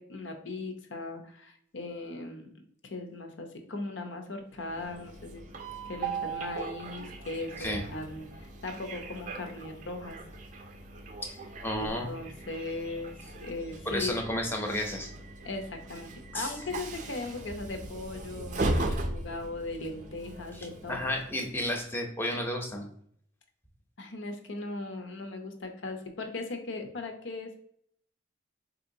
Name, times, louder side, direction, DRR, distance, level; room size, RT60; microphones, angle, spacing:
voice 1, 0.0-2.5 2.8-5.5 5.8-10.2 11.8-13.1 13.4-14.1 15.4-21.0 24.0-27.6, left 2 dB, 80° left, 5 dB, 0.7 m, -38 dB
Train, 4.5-21.8, right 2 dB, 40° right, 0.4 m, -38 dB
voice 2, 11.2-12.1 13.9-15.1 16.3-16.5 20.5-22.9, left 1 dB, 10° left, 2 dB, 0.6 m, -32 dB
4.4 x 2.8 x 2.6 m, 0.66 s
head